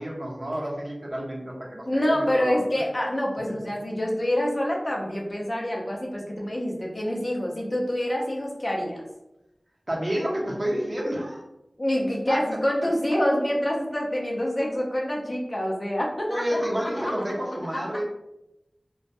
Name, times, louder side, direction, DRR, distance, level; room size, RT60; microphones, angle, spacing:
voice 1, 0.0-2.6 9.9-11.4 12.3-12.4 16.3-18.0, equal, 40° right, -3 dB, 0.7 m, -29 dB
voice 2, 1.8-9.0 11.8-17.1, left 1 dB, 40° left, -2 dB, 0.6 m, -26 dB
2.2 x 2.1 x 2.6 m, 0.90 s
wide cardioid pair, 50°, 0 cm